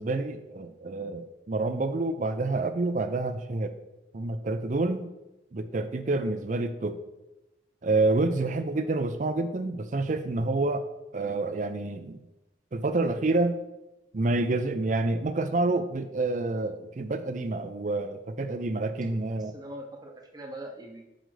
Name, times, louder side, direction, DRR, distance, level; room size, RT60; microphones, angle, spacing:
voice 1, 0.0-3.7 4.1-5.1 5.5-7.0 7.8-10.8 11.1-12.2 12.7-13.6 14.1-19.5, right 2 dB, 45° right, 10 dB, 0.5 m, -28 dB
voice 2, 6.1-6.6 19.4-21.1, right 1 dB, 20° right, 2 dB, 0.8 m, -43 dB
7.8 x 5.2 x 3.2 m, 0.95 s
head